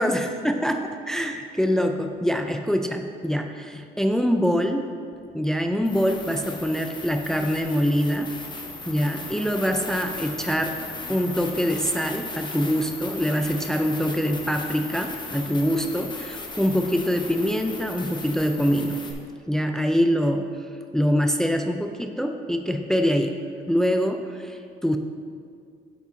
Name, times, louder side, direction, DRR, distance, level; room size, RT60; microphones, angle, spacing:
voice 1, 0.0-4.9 5.3-8.3 8.9-10.8 11.1-19.0 19.5-20.5 20.9-23.4 23.7-25.0, equal, 5° left, 5 dB, 0.4 m, -24 dB
sound 1, 5.1-5.2 5.8-19.1, left 3 dB, 25° left, 0.9 m, -37 dB
9.5 x 7.1 x 2.7 m, 2.2 s
cardioid pair, 110°, 17 cm